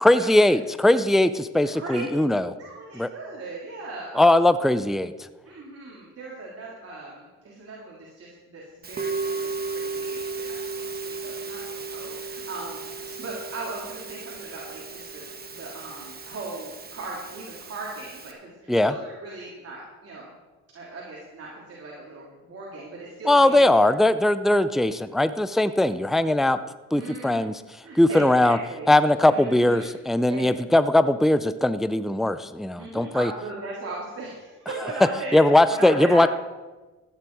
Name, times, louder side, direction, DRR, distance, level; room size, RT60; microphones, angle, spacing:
voice 1, 0.0-2.5 3.0-3.1 4.2-5.1 18.7-18.9 23.2-26.6 26.9-27.6 28.0-28.6 28.9-33.3 35.3-36.3, left 1 dB, ahead, 13 dB, 0.4 m, -20 dB
voice 2, 1.7-2.0 2.3-4.3 5.4-12.8 13.2-15.3 15.5-20.3 20.7-23.9 26.9-27.5 27.8-29.9 30.3-30.6 32.8-36.3, right 2 dB, 50° right, -4 dB, 3.3 m, -38 dB
Musical instrument, 8.8-18.3, right 4 dB, 30° right, 1.5 m, -35 dB
14.5 x 9.8 x 4.7 m, 1.2 s
cardioid pair, 90°, 30 cm